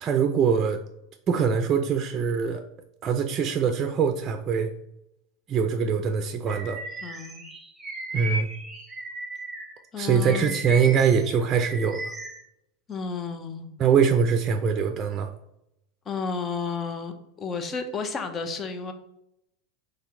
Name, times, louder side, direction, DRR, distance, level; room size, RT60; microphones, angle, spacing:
voice 1, 0.0-0.8 1.3-2.6 3.0-4.7 5.5-6.8 8.1-8.5 10.0-12.1 13.8-15.3, right 6 dB, 35° right, 6 dB, 0.5 m, -23 dB
Bird vocalization bird call bird song, 6.5-9.8 10.2-12.4, right 2 dB, 10° right, 1.3 m, -36 dB
voice 2, 7.0-7.5 9.9-10.6 12.9-13.7 16.1-18.9, left 5 dB, 30° left, 7 dB, 0.7 m, -32 dB
4.3 x 3.3 x 3.7 m, 0.80 s
hypercardioid pair, 105°, 0 cm